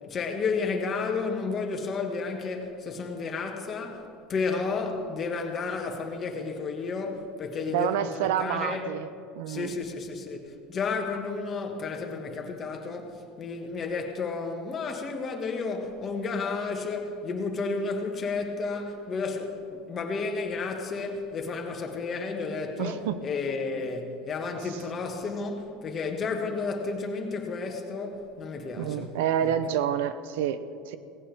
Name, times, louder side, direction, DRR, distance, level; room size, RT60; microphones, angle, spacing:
voice 1, 0.0-8.8 9.5-29.5, left 4 dB, 30° left, 1.8 m, -32 dB
voice 2, 7.7-9.0 9.4-9.7 22.8-23.2 28.8-31.0, right 9 dB, 80° right, 0.7 m, -28 dB
18.0 x 15.5 x 3.6 m
supercardioid pair, 125°, 0 cm